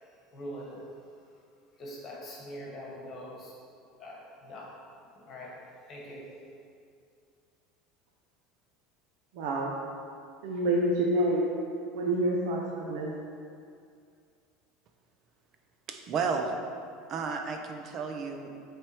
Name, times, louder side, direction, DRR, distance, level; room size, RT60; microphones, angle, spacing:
voice 1, 0.3-0.8 1.7-3.5 4.0-4.8 5.1-5.5 5.9-6.2, equal, 30° left, -4 dB, 1.3 m, -43 dB
voice 2, 9.3-9.7 10.4-11.4 11.9-13.1, right 1 dB, 70° right, -2 dB, 0.7 m, -27 dB
voice 3, 15.9-16.5 17.1-18.6, right 5 dB, 35° right, 4 dB, 0.6 m, -32 dB
7.3 x 3.4 x 4.5 m, 2.3 s
cardioid pair, 155°, 0 cm